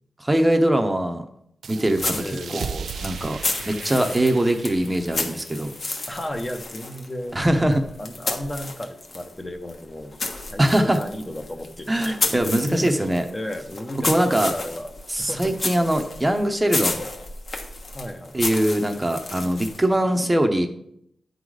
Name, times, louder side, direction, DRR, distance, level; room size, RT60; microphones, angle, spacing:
voice 1, 0.2-1.2 1.7-2.1 2.5-3.4 3.7-5.7 7.3-7.8 10.6-11.0 11.9-13.2 14.0-14.5 15.1-17.0 18.3-20.7, right 1 dB, 20° right, 6 dB, 0.8 m, -22 dB
sound 1, 1.6-6.9, right 6 dB, 80° right, 0.3 m, -38 dB
sound 2, 1.9-9.3 9.7-19.9, left 3 dB, 55° left, 1.3 m, -32 dB
voice 2, 2.1-2.6 3.9-4.3 6.1-7.4 8.0-10.1 10.4-14.9 15.2-15.6 17.9-18.3, left 1 dB, 20° left, 5 dB, 0.8 m, -34 dB
9.3 x 4.0 x 4.8 m, 0.73 s
cardioid pair, 80°, 0 cm